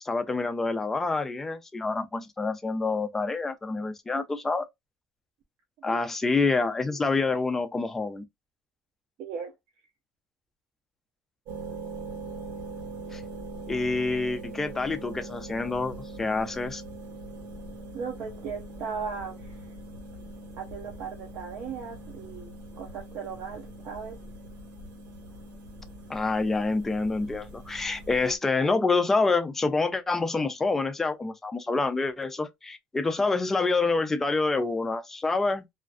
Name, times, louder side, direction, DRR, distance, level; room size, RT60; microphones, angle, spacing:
voice 1, 0.0-4.6 5.8-8.2 13.1-13.2 13.7-16.8 26.1-35.7, left 3 dB, 10° left, 0.3 m, -27 dB
voice 2, 9.2-9.5 17.9-19.6 20.6-24.2, right 6 dB, 55° right, 0.6 m, -37 dB
sound 1, 11.5-28.4, right 2 dB, 80° right, 1.3 m, -42 dB
2.4 x 2.3 x 2.3 m
cardioid pair, 170°, 3 cm